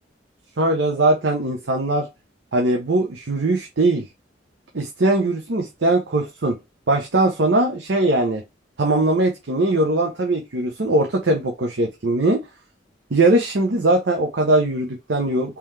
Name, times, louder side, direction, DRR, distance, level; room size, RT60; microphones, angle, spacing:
voice 1, 0.6-2.1 2.5-4.1 4.7-6.6 6.9-8.4 8.8-12.4 13.1-15.6, right 2 dB, 70° right, 2 dB, 0.7 m, -20 dB
3.8 x 3.0 x 3.2 m, 0.23 s
head